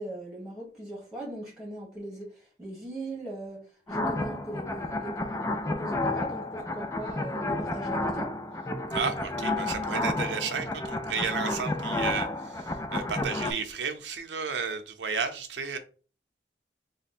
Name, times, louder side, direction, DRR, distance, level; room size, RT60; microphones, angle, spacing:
voice 1, 0.0-3.6 3.9-8.3, right 1 dB, 5° right, 1.6 m, -39 dB
sound 1, 3.9-13.5, left 2 dB, 15° left, 0.3 m, -31 dB
voice 2, 8.9-15.8, right 5 dB, 85° right, 0.6 m, -33 dB
3.4 x 2.2 x 4.2 m
head